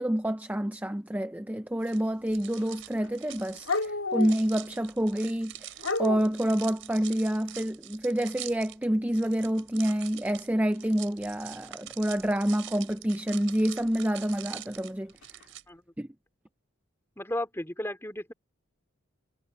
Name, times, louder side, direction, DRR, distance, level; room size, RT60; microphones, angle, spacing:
voice 1, 0.0-5.5 6.0-15.1 16.0-16.1, equal, 10° right, 0.5 m, -28 dB
sound 1, 1.8-15.6, right 12 dB, 70° right, 4.3 m, -45 dB
sound 2, 2.3-2.8 3.0-4.8 5.8-6.4 10.6-10.8 12.0-12.1 14.3-14.4 15.2-15.4, left 3 dB, 90° left, 2.9 m, -32 dB
voice 2, 17.2-18.3, left 1 dB, 10° left, 2.8 m, -34 dB
head